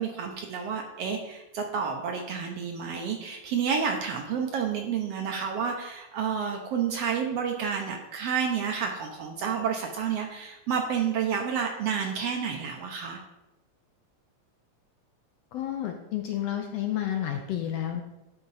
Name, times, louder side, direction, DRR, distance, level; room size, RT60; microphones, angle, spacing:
voice 1, 0.0-13.2, right 7 dB, 70° right, 3 dB, 1.5 m, -30 dB
voice 2, 15.5-18.0, left 11 dB, 75° left, 3 dB, 1.5 m, -30 dB
10.0 x 4.3 x 4.0 m, 0.96 s
omnidirectional pair, 3.3 m